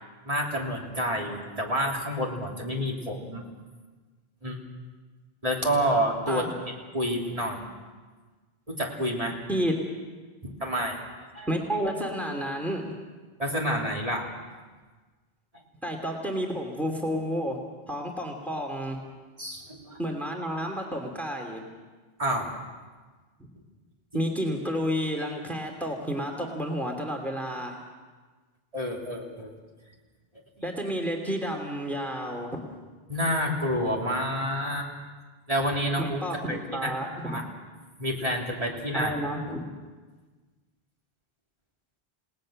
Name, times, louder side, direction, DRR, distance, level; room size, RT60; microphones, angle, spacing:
voice 1, 0.2-3.4 4.4-4.6 5.4-6.4 6.9-7.6 8.7-9.4 10.4-11.0 11.3-11.5 13.4-14.3 19.4-20.0 22.2-22.5 28.7-29.5 33.1-34.9 35.5-36.2 36.5-36.9 37.2-37.4 38.0-39.1, equal, 35° right, -2 dB, 3.4 m, -28 dB
voice 2, 11.5-12.9 15.8-17.6 17.9-19.0 20.0-21.6 24.1-27.7 30.6-32.6 36.0-37.4 38.9-39.6, equal, ahead, 2 dB, 2.6 m, -30 dB
29.5 x 18.5 x 6.5 m, 1.4 s
omnidirectional pair, 1.0 m